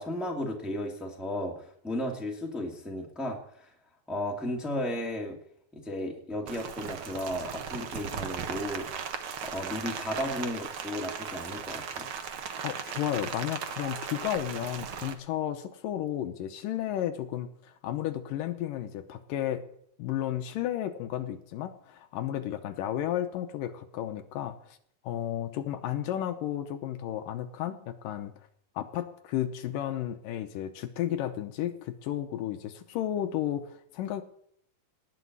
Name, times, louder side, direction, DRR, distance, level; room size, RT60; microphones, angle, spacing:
voice 1, 0.0-3.7 4.1-5.4 5.7-9.1 9.5-12.1, left 1 dB, ahead, 0 dB, 1.7 m, -34 dB
Rain, 6.5-15.1, right 7 dB, 65° right, 1.3 m, -37 dB
voice 2, 12.6-19.7 20.0-24.8 25.0-28.3 28.8-34.2, left 11 dB, 75° left, 9 dB, 2.4 m, -33 dB
18.5 x 6.4 x 9.5 m, 0.69 s
omnidirectional pair, 4.0 m